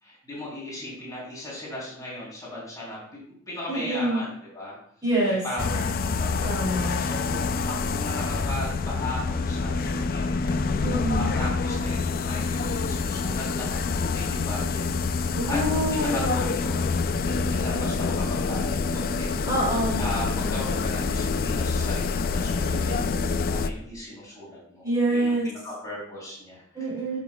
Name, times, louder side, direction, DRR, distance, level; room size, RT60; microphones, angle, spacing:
voice 1, 0.0-3.0 3.5-4.7 5.3-10.8 11.1-16.9 17.2-19.3 20.0-26.6, left 1 dB, 15° left, -6 dB, 3.3 m, -37 dB
voice 2, 3.7-4.2 5.0-5.4 6.4-7.0 10.8-11.3 15.3-16.5 19.4-20.1 24.8-25.5 26.7-27.2, right 1 dB, 20° right, -7 dB, 2.7 m, -26 dB
sound 1, 5.6-23.7, left 4 dB, 45° left, 0.4 m, -26 dB
14.0 x 5.8 x 2.3 m, 0.63 s
head